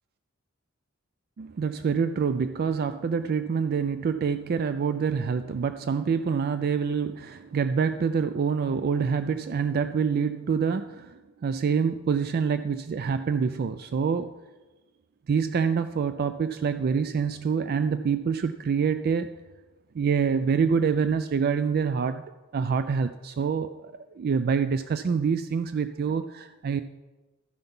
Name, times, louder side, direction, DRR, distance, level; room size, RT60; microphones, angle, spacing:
voice 1, 1.4-14.3 15.3-19.3 19.9-22.2 22.5-26.8, right 6 dB, 45° right, 11 dB, 0.3 m, -26 dB
13.0 x 5.8 x 5.4 m, 1.2 s
head